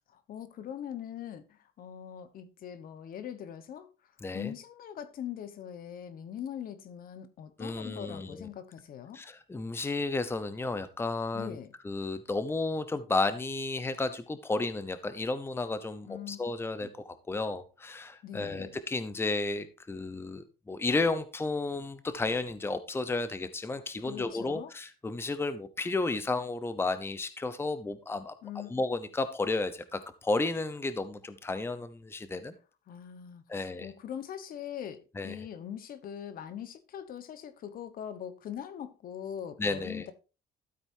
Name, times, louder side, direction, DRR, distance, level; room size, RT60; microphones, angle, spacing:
voice 1, 0.1-9.2 11.3-11.7 16.1-16.4 16.8-16.9 18.2-18.8 24.0-24.7 28.4-28.7 32.9-40.1, left 9 dB, 60° left, 1.2 m, -42 dB
voice 2, 4.2-4.5 7.6-8.5 9.1-11.6 11.8-28.3 28.7-32.5 33.5-33.9 35.2-35.4 39.6-40.1, left 3 dB, 15° left, 0.8 m, -32 dB
12.5 x 8.0 x 2.7 m
cardioid pair, 110°, 17 cm